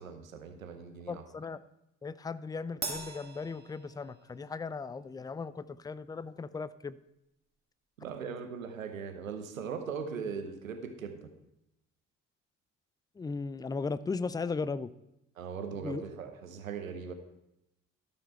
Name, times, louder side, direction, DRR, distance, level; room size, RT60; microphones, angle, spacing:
voice 1, 0.0-1.2 8.0-11.3 15.4-17.1, right 6 dB, 85° right, 7 dB, 0.9 m, -39 dB
voice 2, 1.1-1.6 2.0-7.0 13.2-14.9 15.7-16.0, left 4 dB, 10° left, 17 dB, 0.4 m, -37 dB
Crash cymbal, 2.8-4.5, right 3 dB, 25° right, 1.6 m, -41 dB
12.5 x 7.0 x 4.3 m, 0.87 s
figure-of-eight pair, 45°, 39 cm